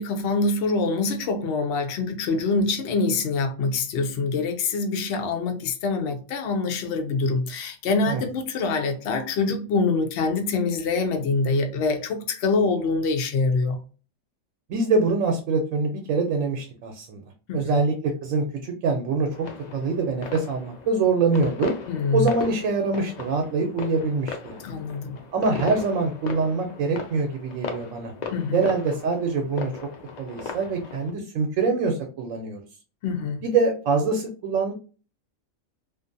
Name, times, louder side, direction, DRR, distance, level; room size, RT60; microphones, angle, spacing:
voice 1, 0.0-13.8 17.5-17.8 21.9-22.3 24.6-25.2 28.3-28.6 33.0-33.4, left 3 dB, 65° left, 0.8 m, -25 dB
voice 2, 14.7-17.2 17.5-19.5 19.7-21.7 22.1-24.6 25.3-28.1 28.5-29.7 30.2-32.6 33.4-34.7, right 4 dB, 80° right, 0.9 m, -24 dB
sound 1, 19.3-31.1, left 5 dB, 85° left, 0.3 m, -37 dB
2.5 x 2.4 x 2.5 m
omnidirectional pair, 1.3 m